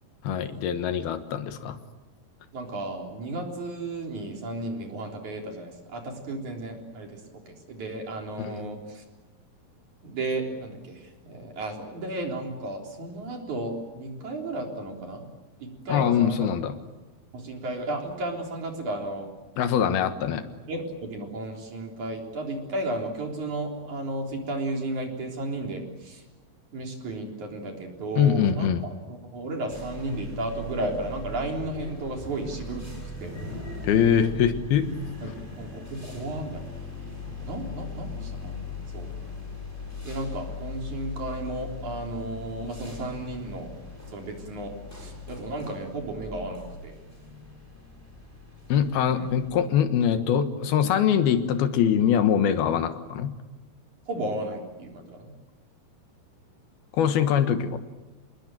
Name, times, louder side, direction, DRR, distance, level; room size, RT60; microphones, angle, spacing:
voice 1, 0.2-1.8 8.4-8.5 15.9-16.7 19.6-20.4 28.2-28.8 33.8-34.9 48.7-53.3 56.9-57.8, left 8 dB, 75° left, 9 dB, 3.3 m, -23 dB
voice 2, 2.5-9.0 10.0-15.2 15.6-16.5 17.3-19.3 20.7-26.2 26.7-33.4 35.2-36.6 37.4-38.6 38.9-39.1 40.0-43.7 44.1-46.9 49.1-49.3 54.1-55.3, right 2 dB, 50° right, 2 dB, 5.0 m, -34 dB
sound 1, 29.7-49.5, left 3 dB, 5° left, 6.6 m, -39 dB
28.0 x 21.0 x 9.1 m, 1.2 s
omnidirectional pair, 4.4 m